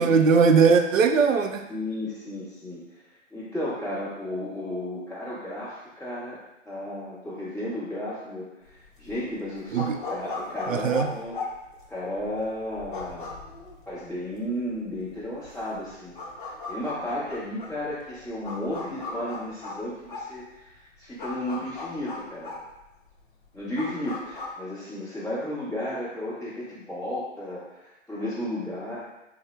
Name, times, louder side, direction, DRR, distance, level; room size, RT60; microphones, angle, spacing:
voice 1, 0.0-1.7 9.7-10.0 10.7-11.1, right 5 dB, 90° right, 6 dB, 0.5 m, -20 dB
voice 2, 1.7-2.9 3.3-6.4 6.6-8.5 9.0-11.4 11.9-13.3 13.9-16.1 16.4-20.7 21.0-22.6 23.5-29.1, left 1 dB, ahead, -15 dB, 0.7 m, -33 dB
sound 1, 8.7-24.5, left 3 dB, 40° left, 0.7 m, -38 dB
3.4 x 2.0 x 4.2 m, 0.93 s
hypercardioid pair, 150°, 38 cm